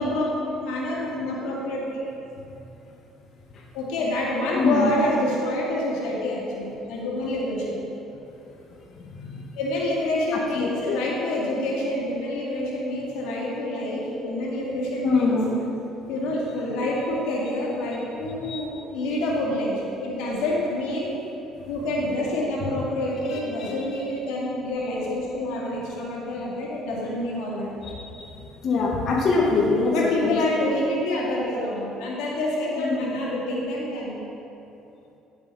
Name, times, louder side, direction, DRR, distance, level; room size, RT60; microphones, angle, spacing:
voice 1, 0.0-2.0 3.7-7.8 9.6-15.3 16.1-21.1 21.7-27.7 29.9-34.2, left 1 dB, 90° left, -4 dB, 2.0 m, -27 dB
voice 2, 4.5-4.9 9.0-9.4 10.5-11.0 15.0-15.5 18.5-18.6 23.3-23.7 28.1-28.3 28.6-30.4 32.8-33.2, left 4 dB, 55° left, -3 dB, 1.5 m, -24 dB
10.5 x 8.0 x 4.1 m, 2.9 s
cardioid pair, 95°, 0 cm